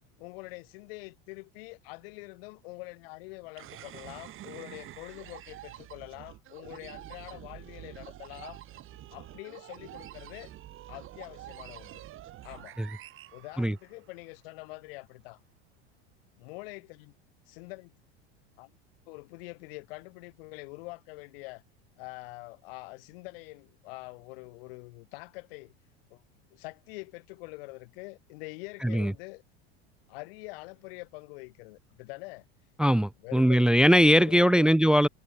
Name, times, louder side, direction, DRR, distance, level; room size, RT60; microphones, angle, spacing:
voice 1, 0.2-8.6 9.1-10.5 10.9-12.0 12.4-12.8 13.3-15.4 16.4-17.1 17.5-18.0 18.6-18.7 19.1-21.6 22.0-25.7 26.1-26.2 26.5-29.4 30.1-32.4 33.2-33.8 34.2-34.7, left 26 dB, 70° left, 2.4 m, -45 dB
sound 1, 3.6-14.2, right 14 dB, 40° right, 1.9 m, -47 dB
voice 2, 28.8-29.1 32.8-35.1, equal, 5° right, 0.6 m, -21 dB
hypercardioid pair, 100°, 30 cm